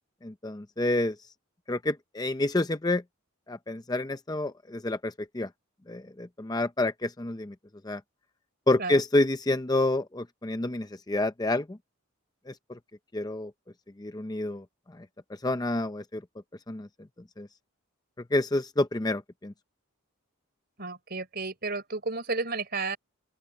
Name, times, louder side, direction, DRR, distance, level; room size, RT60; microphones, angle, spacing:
voice 1, 0.2-1.2 1.7-3.0 3.5-5.5 5.9-7.5 7.8-8.0 8.7-11.8 12.5-12.8 13.1-13.5 14.0-16.2 16.7-16.9 17.4-17.5 18.3-19.5, left 2 dB, 20° left, 0.6 m, -29 dB
voice 2, 20.8-23.0, right 3 dB, 45° right, 4.5 m, -32 dB
open air
head